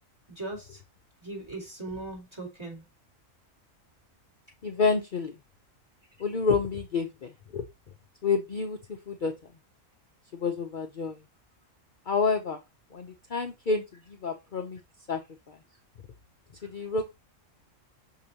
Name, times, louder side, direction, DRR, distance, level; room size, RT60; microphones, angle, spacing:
voice 1, 0.3-0.8 1.2-2.8, right 2 dB, 20° right, 4.0 m, -39 dB
voice 2, 4.6-5.3 6.2-7.6 8.2-9.3 10.3-11.2 12.1-12.6 12.9-14.8 15.1-15.2 15.5-15.6 16.6-17.1, left 4 dB, 45° left, 0.9 m, -29 dB
6.4 x 5.3 x 2.8 m
omnidirectional pair, 1.3 m